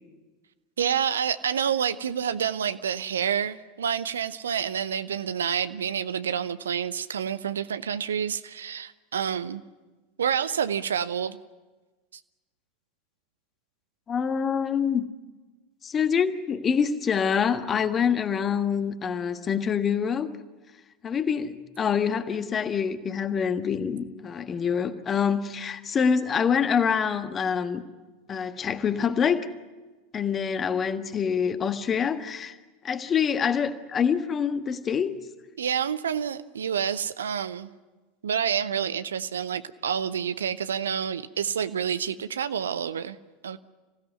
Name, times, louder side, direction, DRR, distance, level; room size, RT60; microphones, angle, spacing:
voice 1, 0.8-9.6 10.2-11.4 35.6-37.7 38.2-43.2 43.4-43.6, right 8 dB, 70° right, 14 dB, 0.8 m, -28 dB
voice 2, 14.1-15.1 15.8-20.3 21.0-27.8 28.3-29.5 30.1-32.6 32.8-35.1, left 7 dB, 25° left, 9 dB, 1.5 m, -26 dB
26.5 x 16.5 x 9.7 m, 1.2 s
figure-of-eight pair, 80°, 0 cm